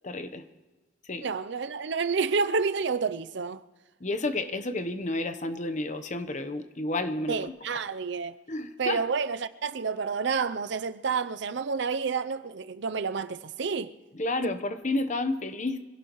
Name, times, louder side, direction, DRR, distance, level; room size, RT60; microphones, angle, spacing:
voice 1, 0.0-0.4 1.0-1.3 4.0-7.4 8.5-9.0 14.1-15.8, left 2 dB, 40° left, 1.0 m, -31 dB
voice 2, 1.2-3.6 7.3-8.3 8.8-13.9 14.4-14.5, right 5 dB, 65° right, 0.6 m, -29 dB
25.5 x 17.0 x 3.1 m
head